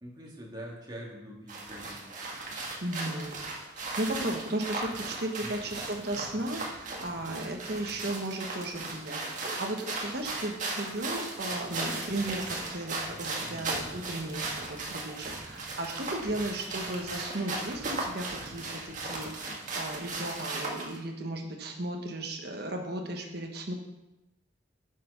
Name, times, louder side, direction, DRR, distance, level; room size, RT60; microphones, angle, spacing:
voice 1, 0.0-2.1 5.4-5.6 13.4-13.7 16.3-16.5, right 1 dB, 20° right, -3 dB, 2.3 m, -44 dB
sound 1, 1.5-21.0, right 2 dB, 40° right, 1.8 m, -37 dB
voice 2, 2.8-3.4 3.7-23.7, right 1 dB, 55° right, 1 dB, 1.2 m, -35 dB
8.3 x 6.8 x 5.7 m, 0.95 s
head